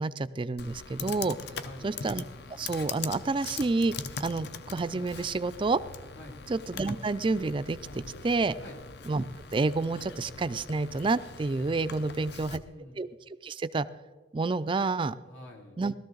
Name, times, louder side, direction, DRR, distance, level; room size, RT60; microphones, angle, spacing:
voice 1, 0.0-1.4 1.8-2.2 2.6-3.9 4.2-5.8 6.5-7.8 8.2-8.5 9.1-9.2 9.5-12.6 13.0-13.1 13.4-13.9 14.3-15.2 15.8-15.9, right 3 dB, 25° right, 14 dB, 0.4 m, -29 dB
Computer keyboard, 0.6-12.6, left 5 dB, 60° left, 0.7 m, -42 dB
voice 2, 1.5-2.0 6.2-6.4 8.6-8.9 12.0-13.0 15.3-15.8, left 1 dB, 80° left, -1 dB, 2.8 m, -48 dB
17.0 x 13.5 x 3.9 m, 1.4 s
head